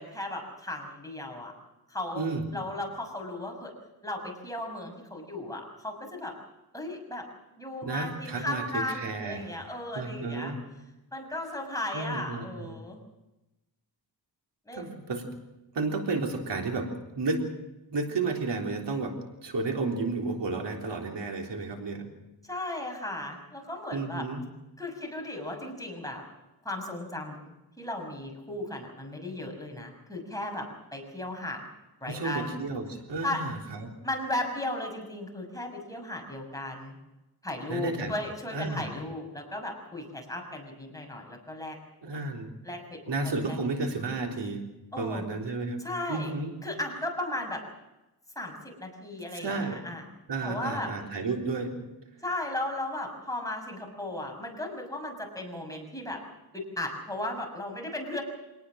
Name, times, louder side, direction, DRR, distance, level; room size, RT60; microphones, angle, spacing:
voice 1, 0.0-1.5 1.9-3.7 4.0-6.3 6.7-7.3 7.6-10.5 11.1-13.0 14.7-15.0 22.4-24.3 24.8-26.2 26.6-31.6 32.0-32.5 33.2-33.4 34.0-37.0 37.4-41.8 42.6-43.6 44.9-45.3 45.8-46.3 46.6-47.6 48.3-50.0 50.4-50.9 52.2-56.2 56.5-58.2, left 1 dB, 10° left, 1 dB, 6.5 m, -36 dB
voice 2, 2.1-2.5 7.8-9.5 9.9-10.6 11.9-12.8 14.7-15.3 15.7-16.9 17.2-17.4 17.9-19.2 19.4-22.1 23.9-24.4 32.1-33.9 37.7-38.1 38.5-38.9 42.0-42.5 43.1-44.6 45.0-45.8 46.1-46.5 49.4-49.8 50.3-51.8, right 3 dB, 80° right, 2 dB, 3.8 m, -32 dB
26.0 x 19.0 x 6.5 m, 0.99 s
wide cardioid pair, 105°, 41 cm